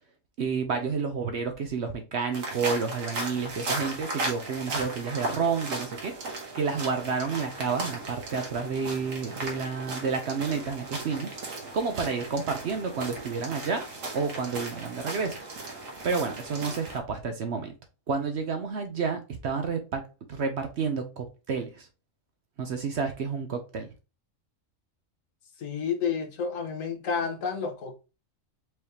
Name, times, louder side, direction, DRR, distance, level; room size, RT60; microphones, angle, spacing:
voice 1, 0.4-6.2 6.5-11.4 11.7-13.8 14.1-15.4 16.0-17.7 18.1-20.0 20.3-21.9 22.6-23.9, right 5 dB, 60° right, 0.9 m, -30 dB
sound 1, 2.3-17.0, right 2 dB, 75° right, 1.6 m, -36 dB
voice 2, 25.6-28.0, left 6 dB, 75° left, 1.4 m, -30 dB
4.7 x 3.3 x 2.8 m
omnidirectional pair, 1.4 m